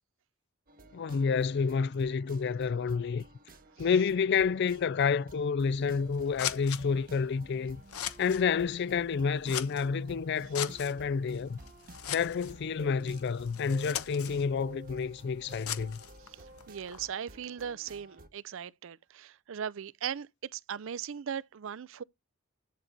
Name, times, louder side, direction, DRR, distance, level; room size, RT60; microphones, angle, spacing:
sound 1, 0.7-18.3, right 2 dB, 40° right, 1.0 m, -53 dB
voice 1, 0.9-3.2 3.8-7.8 8.2-11.6 12.1-16.0, left 5 dB, 50° left, 0.4 m, -29 dB
Scissors, 5.6-17.1, left 10 dB, 85° left, 1.0 m, -42 dB
voice 2, 16.2-22.0, right 8 dB, 60° right, 0.4 m, -39 dB
10.5 x 4.0 x 4.5 m
head